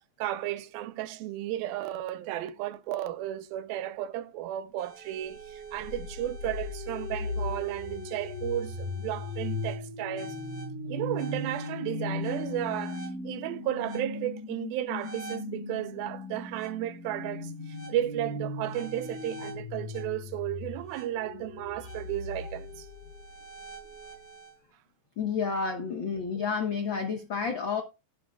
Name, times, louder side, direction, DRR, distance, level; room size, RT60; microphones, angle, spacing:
voice 1, 0.2-10.4 10.9-22.9, right 13 dB, 85° right, 2.6 m, -34 dB
sound 1, 4.8-24.5, left 2 dB, 45° left, 6.9 m, -38 dB
voice 2, 25.2-27.8, left 5 dB, 80° left, 1.1 m, -30 dB
13.0 x 11.5 x 2.4 m
omnidirectional pair, 4.1 m